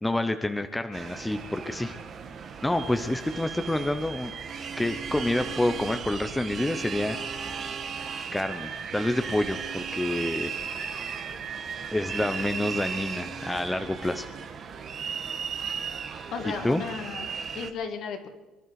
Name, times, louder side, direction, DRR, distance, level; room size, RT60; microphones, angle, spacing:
voice 1, 0.0-1.9 2.6-4.3 4.8-7.2 8.3-10.5 11.9-14.3 16.6-16.8, left 1 dB, 5° left, 8 dB, 0.7 m, -28 dB
sound 1, 0.9-17.7, right 6 dB, 40° right, 1.4 m, -36 dB
voice 2, 16.3-17.3 17.5-18.3, left 6 dB, 55° left, 6 dB, 2.1 m, -34 dB
24.5 x 12.0 x 4.8 m, 1.2 s
cardioid pair, 135°, 0 cm